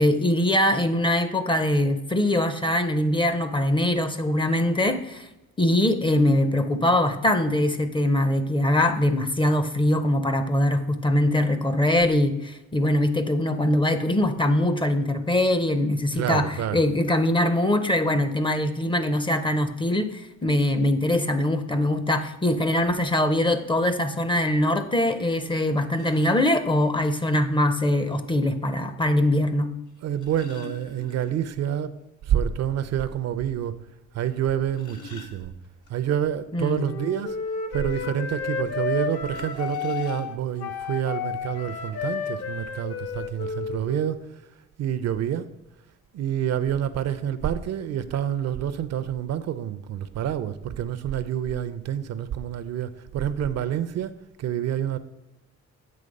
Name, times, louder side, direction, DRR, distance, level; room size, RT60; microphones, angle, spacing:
voice 1, 0.0-5.3 5.6-29.7 36.5-36.9, left 1 dB, 15° left, 0.5 m, -22 dB
voice 2, 16.1-16.8 30.0-31.9 32.3-33.8 34.1-35.5 35.9-37.4 37.7-44.2 44.8-45.5 46.1-55.0, right 10 dB, 60° right, 0.5 m, -28 dB
sound 1, 25.9-26.6 28.0-28.1 29.9-31.6 31.9-32.0 32.4-32.5 33.1-33.2 34.4-35.9 39.3-40.6 41.5-41.6 41.9-42.2, left 4 dB, 80° left, 1.2 m, -45 dB
Wind instrument woodwind instrument, 36.8-44.2, left 6 dB, 55° left, 0.7 m, -32 dB
7.8 x 3.2 x 5.2 m
cardioid pair, 90°, 30 cm